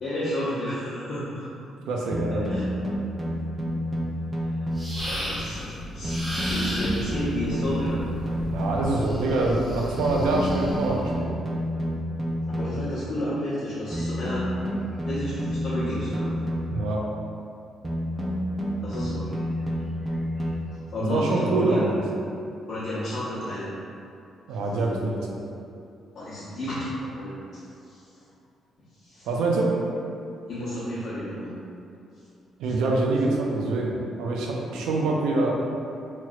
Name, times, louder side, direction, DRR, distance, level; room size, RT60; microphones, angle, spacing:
voice 1, 0.0-1.5 2.4-2.6 4.4-4.5 5.0-8.0 12.5-14.6 15.0-16.3 18.8-19.4 20.0-21.9 22.7-23.7 26.1-28.2 29.0-29.3 30.5-31.5 34.6-34.9, left 1 dB, 50° left, -15 dB, 1.0 m, -32 dB
voice 2, 1.9-2.6 8.5-11.3 16.7-17.1 21.0-22.0 24.5-25.4 29.3-29.8 32.6-35.5, right 2 dB, 90° right, -1 dB, 0.4 m, -25 dB
sound 1, 2.1-5.1 6.0-9.0 10.0-13.0 13.9-16.9 17.8-20.5, equal, 25° right, 0.5 m, -29 dB
sound 2, 4.8-5.6 6.0-7.3 9.0-10.9, equal, 5° right, 1.0 m, -35 dB
sound 3, 5.0-11.0, equal, 20° left, 1.1 m, -37 dB
3.0 x 2.9 x 2.4 m, 2.6 s
cardioid pair, 90°, 0 cm